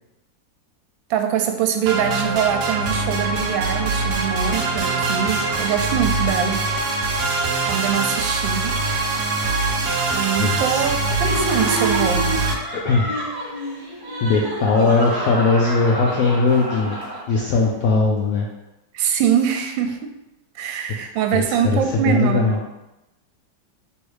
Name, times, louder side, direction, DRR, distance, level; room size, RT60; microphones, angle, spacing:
voice 1, 1.1-6.6 7.7-8.8 10.1-12.3 18.9-20.1 20.5-22.6, right 9 dB, 85° right, 5 dB, 1.3 m, -23 dB
sound 1, 1.9-12.5, right 3 dB, 70° right, 0.9 m, -23 dB
voice 2, 10.4-10.8 12.8-13.1 14.2-16.9 17.3-18.5 21.3-22.6, left 4 dB, 75° left, -2 dB, 0.8 m, -19 dB
Laughter, 11.2-17.5, right 1 dB, 40° right, 0.3 m, -28 dB
3.2 x 3.0 x 4.7 m, 0.94 s
omnidirectional pair, 2.0 m